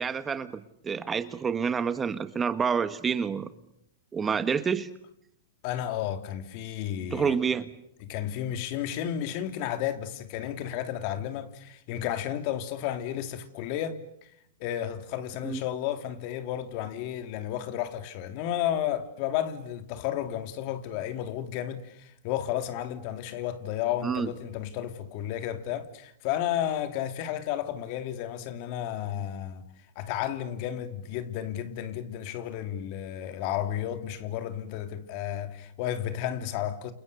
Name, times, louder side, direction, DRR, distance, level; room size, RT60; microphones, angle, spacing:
voice 1, 0.0-3.5 4.1-4.9 7.1-7.7 15.4-15.6 24.0-24.3, right 6 dB, 20° right, 1.4 m, -28 dB
voice 2, 5.6-7.4 8.0-14.3 14.6-29.6 29.9-36.9, left 11 dB, 50° left, 3.0 m, -32 dB
30.0 x 29.0 x 7.0 m
hypercardioid pair, 125°, 0 cm